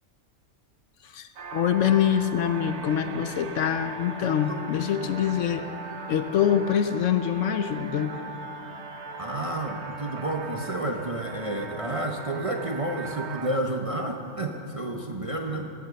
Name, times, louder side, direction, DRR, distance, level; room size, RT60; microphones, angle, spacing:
voice 1, 1.0-5.7 6.1-8.1, left 9 dB, 65° left, 10 dB, 0.9 m, -25 dB
sound 1, 1.4-13.6, right 4 dB, 55° right, 1.1 m, -39 dB
voice 2, 9.2-15.7, right 1 dB, 35° right, 2 dB, 0.6 m, -30 dB
18.0 x 8.3 x 6.8 m, 2.6 s
omnidirectional pair, 1.5 m